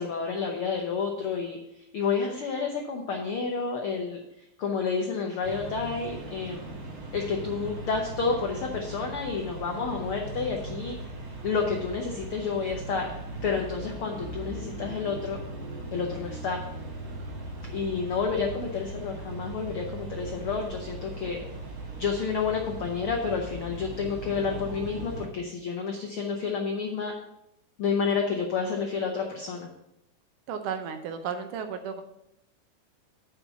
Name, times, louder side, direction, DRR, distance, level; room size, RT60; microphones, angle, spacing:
voice 1, 0.0-1.6 1.9-4.2 4.6-6.7 7.1-11.0 11.4-13.1 13.4-15.4 15.9-16.6 17.7-21.4 22.0-27.1 27.8-29.7, left 5 dB, 85° left, 1 dB, 1.2 m, -30 dB
sound 1, 5.4-25.3, right 2 dB, 45° right, 1.1 m, -39 dB
voice 2, 30.5-32.0, right 7 dB, 75° right, 7 dB, 2.2 m, -33 dB
9.2 x 5.5 x 5.6 m, 0.83 s
omnidirectional pair, 3.8 m